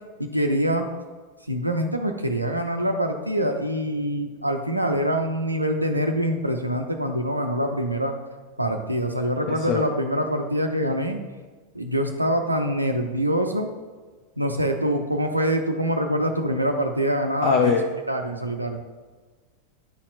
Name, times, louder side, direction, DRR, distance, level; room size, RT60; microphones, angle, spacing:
voice 1, 0.2-0.9 1.5-8.1 8.6-11.2 11.7-13.7 14.4-17.7 18.1-18.8, equal, 85° right, 4 dB, 0.4 m, -25 dB
voice 2, 9.5-9.8 17.4-17.8, left 5 dB, 35° left, 2 dB, 0.5 m, -21 dB
9.5 x 4.2 x 2.5 m, 1.4 s
figure-of-eight pair, 90°, 0 cm